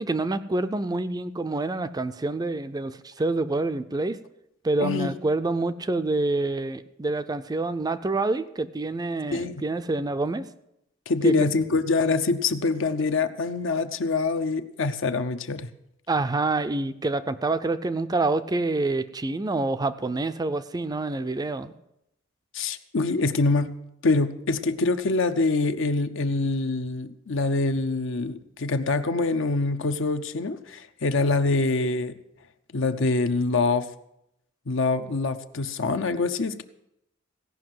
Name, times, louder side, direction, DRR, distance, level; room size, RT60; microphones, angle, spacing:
voice 1, 0.0-4.2 4.6-10.5 11.2-11.4 16.1-21.7, right 2 dB, 20° right, 12 dB, 0.4 m, -27 dB
voice 2, 4.8-5.1 9.3-9.6 11.1-15.7 22.5-23.7 24.0-32.2 32.7-33.9 34.7-36.6, left 3 dB, 65° left, 10 dB, 0.7 m, -25 dB
16.5 x 5.7 x 7.6 m, 0.81 s
head